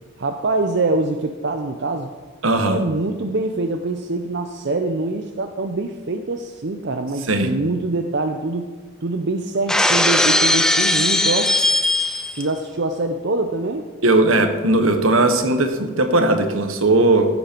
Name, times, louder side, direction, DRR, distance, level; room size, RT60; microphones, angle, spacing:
voice 1, 0.2-2.1 2.7-8.7 9.0-11.5 12.4-13.8, right 2 dB, 55° right, 5 dB, 0.6 m, -24 dB
voice 2, 2.4-2.8 7.3-7.5 14.0-17.3, right 2 dB, 75° right, 7 dB, 1.3 m, -17 dB
Shatter, 9.7-12.5, left 1 dB, 5° left, 0.5 m, -18 dB
15.0 x 8.0 x 4.5 m, 1.4 s
head